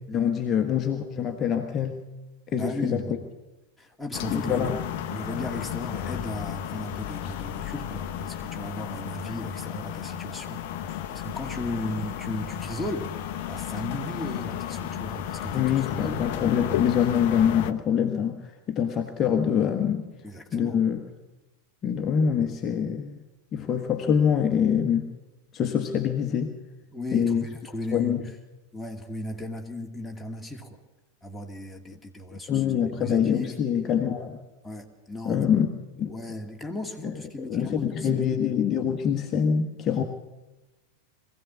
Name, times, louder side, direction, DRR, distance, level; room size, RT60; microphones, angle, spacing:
voice 1, 0.1-2.0 2.5-3.2 4.3-4.8 15.5-20.1 20.5-21.0 21.8-23.2 23.5-25.1 25.5-26.6 27.1-27.4 27.9-28.2 32.5-34.4 35.2-35.7 36.0-36.1 37.4-40.0, left 8 dB, 25° left, 4 dB, 1.4 m, -25 dB
voice 2, 2.5-3.2 3.8-13.1 13.5-16.2 20.2-20.8 26.9-28.2 28.7-30.8 31.2-32.6 33.0-33.6 34.6-35.5 36.1-38.2, left 1 dB, 5° left, 0 dB, 2.2 m, -36 dB
sound 1, 4.1-17.7, left 10 dB, 50° left, 0.9 m, -33 dB
22.5 x 16.0 x 7.2 m, 1.1 s
figure-of-eight pair, 90°, 0 cm